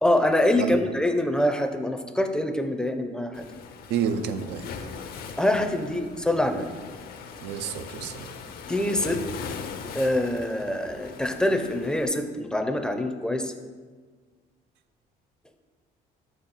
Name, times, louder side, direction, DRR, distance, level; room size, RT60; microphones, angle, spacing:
voice 1, 0.0-3.4 5.4-6.7 8.7-9.2 9.9-13.5, left 1 dB, 5° left, 6 dB, 0.4 m, -25 dB
Waves surf, 3.3-12.1, left 6 dB, 65° left, 0.6 m, -40 dB
voice 2, 3.9-4.7 7.4-8.3, right 7 dB, 90° right, 9 dB, 0.4 m, -29 dB
5.9 x 4.4 x 4.0 m, 1.5 s
cardioid pair, 110°, 17 cm